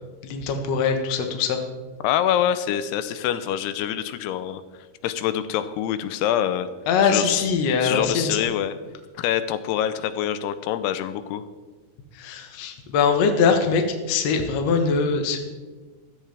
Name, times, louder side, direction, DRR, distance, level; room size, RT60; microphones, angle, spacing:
voice 1, 0.2-1.6 6.9-8.5 12.1-15.4, left 5 dB, 60° left, 4 dB, 1.8 m, -22 dB
voice 2, 2.0-4.6 5.0-6.7 7.0-7.5 7.8-8.8 9.2-11.4, left 10 dB, 90° left, 12 dB, 2.7 m, -25 dB
15.0 x 13.0 x 3.4 m, 1.3 s
omnidirectional pair, 4.6 m